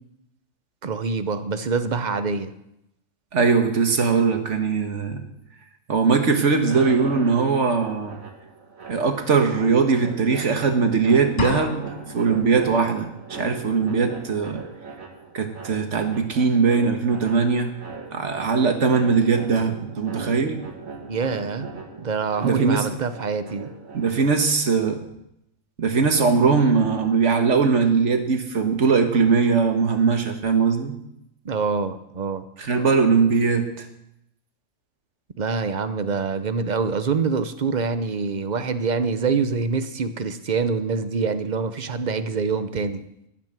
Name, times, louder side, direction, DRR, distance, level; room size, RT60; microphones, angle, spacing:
voice 1, 0.8-2.5 21.1-21.7 22.0-23.7 31.4-32.4 35.4-43.0, right 5 dB, 40° right, 11 dB, 0.8 m, -25 dB
voice 2, 3.3-5.2 5.9-8.2 8.9-11.8 12.1-14.6 15.3-17.7 18.1-20.6 22.4-22.9 23.9-25.0 25.8-30.9 32.6-33.9, right 5 dB, 65° right, 6 dB, 1.7 m, -20 dB
sound 1, 6.6-24.4, right 4 dB, 80° right, 2.1 m, -39 dB
sound 2, 11.4-12.4, left 4 dB, 45° left, 1.1 m, -28 dB
17.5 x 6.1 x 7.5 m, 0.82 s
omnidirectional pair, 1.4 m